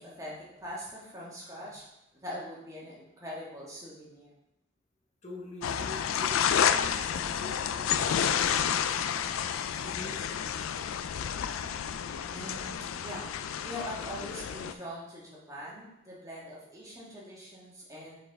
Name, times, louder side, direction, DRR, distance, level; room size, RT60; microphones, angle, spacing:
voice 1, 0.0-1.8 2.2-4.3 12.3-13.2 13.6-18.1, equal, 15° right, -6 dB, 1.6 m, -42 dB
voice 2, 5.2-9.1 9.4-10.4 10.9-11.1, left 1 dB, 35° left, -1 dB, 0.9 m, -46 dB
sound 1, 5.6-14.7, left 8 dB, 90° left, 0.4 m, -30 dB
7.2 x 4.3 x 3.5 m, 0.88 s
head